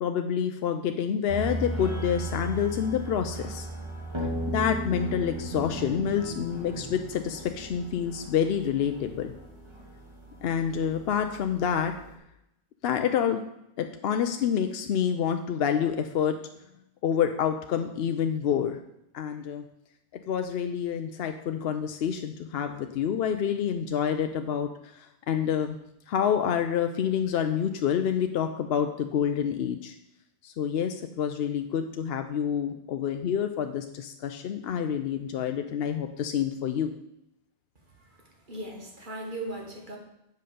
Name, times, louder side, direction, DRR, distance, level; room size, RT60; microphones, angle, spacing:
voice 1, 0.0-3.7 4.5-9.3 10.4-11.9 12.8-13.4 13.8-16.4 17.0-18.8 19.1-19.6 20.3-25.8 26.1-29.9 30.4-36.9, left 8 dB, 65° left, 6 dB, 0.7 m, -28 dB
sound 1, 1.3-12.1, right 2 dB, 25° right, 1.6 m, -37 dB
voice 2, 38.5-40.0, right 1 dB, 45° right, 1 dB, 1.7 m, -38 dB
7.7 x 5.3 x 6.6 m, 0.82 s
omnidirectional pair, 1.2 m